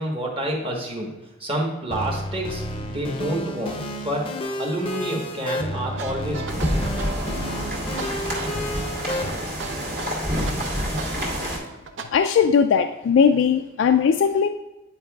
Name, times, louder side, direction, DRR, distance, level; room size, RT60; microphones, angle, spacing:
voice 1, 0.0-6.7, right 1 dB, 30° right, 0 dB, 1.2 m, -29 dB
sound 1, 1.9-9.3, left 1 dB, 30° left, 0.6 m, -31 dB
sound 2, 5.9-12.0, right 4 dB, 85° right, 0.6 m, -36 dB
sound 3, 6.5-11.6, equal, 55° right, 2.0 m, -27 dB
voice 2, 12.1-14.5, left 6 dB, 80° left, 7 dB, 0.3 m, -18 dB
9.7 x 4.6 x 2.3 m, 1.1 s
head